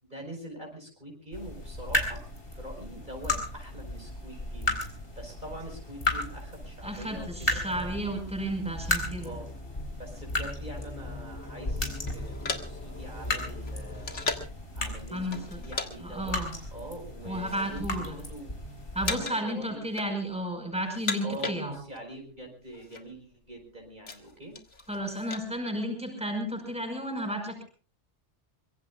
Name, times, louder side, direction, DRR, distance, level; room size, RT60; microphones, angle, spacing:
voice 1, 0.0-2.2 2.5-4.7 5.2-8.1 9.2-9.5 10.0-14.2 14.7-16.4 16.7-18.6 19.0-19.8 21.2-24.6, right 1 dB, 40° right, 1 dB, 5.1 m, -44 dB
sound 1, 1.3-19.2, left 1 dB, 50° left, 4.4 m, -35 dB
voice 2, 6.8-9.3 13.8-14.0 15.1-15.6 16.0-16.5 17.3-18.2 18.6-21.8 24.9-27.6, equal, 5° right, 3 dB, 5.5 m, -33 dB
sound 2, 7.2-14.4, left 1 dB, 15° left, 0.7 m, -43 dB
sound 3, 12.1-14.6 15.3-15.9 16.2-16.4 17.1-17.8 18.1-18.6 19.0-19.5 19.8-20.5 20.8-22.1 22.4-22.5 22.7-23.0 23.5-25.5, left 4 dB, 90° left, 2.1 m, -36 dB
24.5 x 23.0 x 2.3 m, 0.37 s
omnidirectional pair, 1.2 m